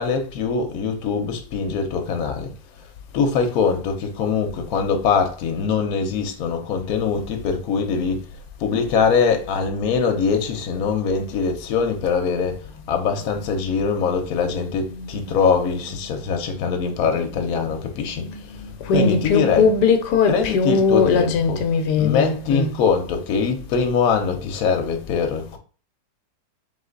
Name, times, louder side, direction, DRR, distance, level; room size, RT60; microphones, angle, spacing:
voice 1, 0.0-2.5 3.1-8.2 8.6-18.3 18.9-19.7 20.3-21.6 22.0-25.6, left 5 dB, 65° left, 1.2 m, -22 dB
voice 2, 14.0-14.5 14.8-16.0 16.2-17.6 18.0-22.7, left 5 dB, 85° left, 1.2 m, -22 dB
3.8 x 3.2 x 3.8 m
omnidirectional pair, 1.8 m